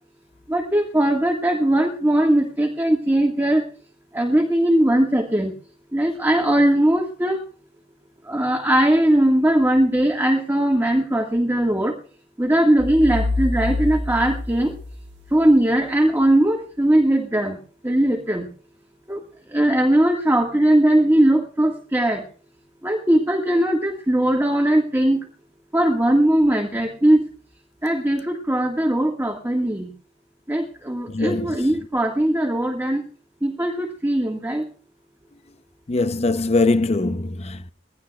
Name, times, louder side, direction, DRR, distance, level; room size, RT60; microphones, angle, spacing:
voice 1, 0.5-3.6 4.1-5.5 5.9-7.4 8.3-12.0 12.4-14.7 15.3-17.6 17.8-18.5 19.1-19.2 19.5-22.2 22.8-25.2 25.7-27.2 27.8-29.9 30.5-33.0 33.4-34.6, right 1 dB, 15° right, 1.6 m, -19 dB
sound 1, 12.8-15.7, left 2 dB, 75° right, 1.4 m, -27 dB
voice 2, 31.1-31.6 35.9-37.7, left 2 dB, 40° left, 0.7 m, -22 dB
21.0 x 16.5 x 2.3 m
head